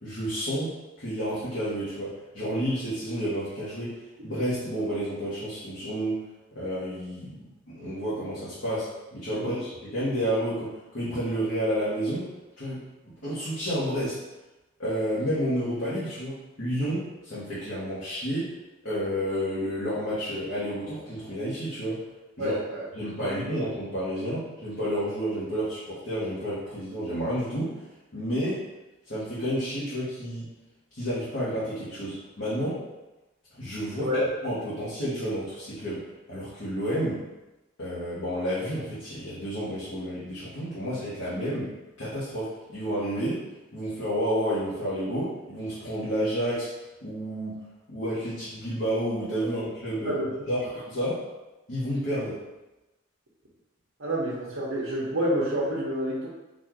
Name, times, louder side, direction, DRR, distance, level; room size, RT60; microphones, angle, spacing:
voice 1, 0.0-3.9 4.2-6.2 6.5-7.4 7.7-12.3 12.6-12.8 13.0-14.2 14.8-18.5 18.8-22.0 22.4-22.6 22.9-27.7 28.1-28.6 29.1-30.5 30.9-32.8 33.6-34.1 34.4-36.0 36.3-37.2 37.8-41.7 42.0-43.4 43.7-46.7 47.0-47.6 47.9-51.2 51.7-52.4, equal, 55° left, -11 dB, 1.3 m, -30 dB
voice 2, 22.4-22.8 33.9-34.2 50.1-50.3 54.0-56.3, equal, 65° right, -6 dB, 1.0 m, -28 dB
4.3 x 2.6 x 4.6 m, 1.0 s
head